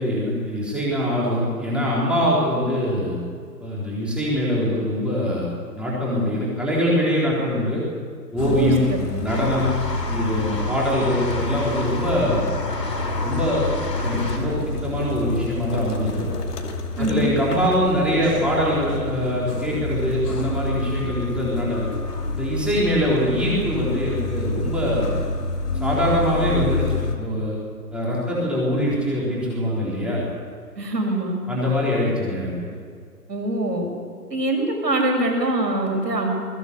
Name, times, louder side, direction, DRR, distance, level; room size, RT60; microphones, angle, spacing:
voice 1, 0.0-3.2 3.6-7.8 8.3-8.9 9.2-9.7 10.1-12.5 13.2-13.7 14.0-16.3 17.0-21.9 22.3-25.1 25.8-27.6 27.9-30.2 31.5-32.7, equal, ahead, -6 dB, 4.0 m, -23 dB
sound 1, 8.4-27.2, left 2 dB, 65° left, 2.7 m, -28 dB
voice 2, 8.5-9.2 17.0-17.3 30.8-31.4 33.3-33.9 34.3-36.3, right 1 dB, 80° right, 2 dB, 7.0 m, -23 dB
sound 2, 9.3-14.4, left 2 dB, 85° left, 6.3 m, -31 dB
21.0 x 16.5 x 8.2 m, 2.1 s
hypercardioid pair, 160°, 49 cm